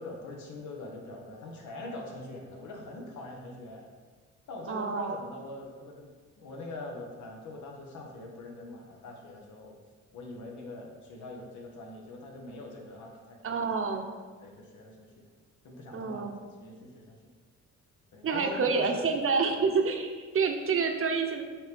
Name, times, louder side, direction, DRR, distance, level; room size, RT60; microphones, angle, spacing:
voice 1, 0.0-3.9 4.5-6.1 6.4-9.7 10.1-13.9 14.4-15.2 15.6-17.2 18.1-19.1 19.6-19.7, left 2 dB, 75° left, 0 dB, 1.5 m, -43 dB
voice 2, 4.7-5.2 13.4-14.1 15.9-16.3 18.2-21.4, right 5 dB, 45° right, 5 dB, 0.9 m, -28 dB
7.5 x 3.6 x 5.3 m, 1.4 s
cardioid pair, 90°, 30 cm